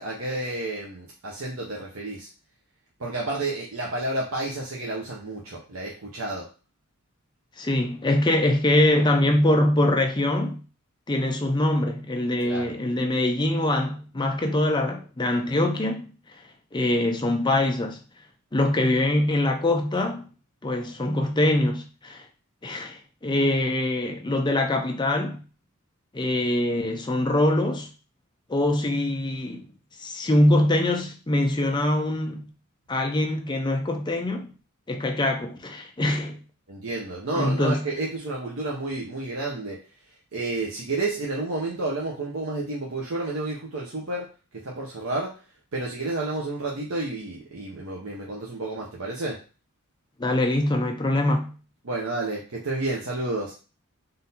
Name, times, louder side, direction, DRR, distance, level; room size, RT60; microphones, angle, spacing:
voice 1, 0.0-2.3 3.0-6.5 12.4-12.7 36.7-39.8 40.3-44.3 44.6-45.3 45.7-49.4 51.8-53.5, right 2 dB, 65° right, 0.8 m, -30 dB
voice 2, 7.6-10.6 11.1-16.1 16.7-18.0 18.5-20.3 20.6-22.3 22.6-25.4 26.1-27.9 28.5-29.7 30.0-32.4 32.9-34.5 34.9-36.4 37.4-37.8 50.2-51.5, left 1 dB, 20° left, 0.6 m, -23 dB
3.8 x 2.7 x 4.1 m
head